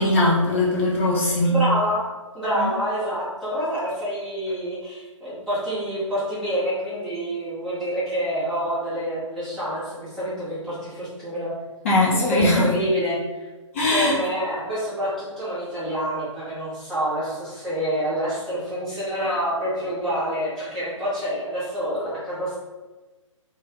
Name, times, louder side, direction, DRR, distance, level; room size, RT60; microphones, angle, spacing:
voice 1, 0.0-1.6 2.6-2.7 11.8-12.7 13.7-14.2, left 1 dB, 25° left, -5 dB, 0.4 m, -20 dB
voice 2, 1.5-2.1 2.3-11.5 12.1-13.5 13.9-22.6, equal, ahead, -14 dB, 1.2 m, -27 dB
3.0 x 2.3 x 3.0 m, 1.2 s
figure-of-eight pair, 130°, 17 cm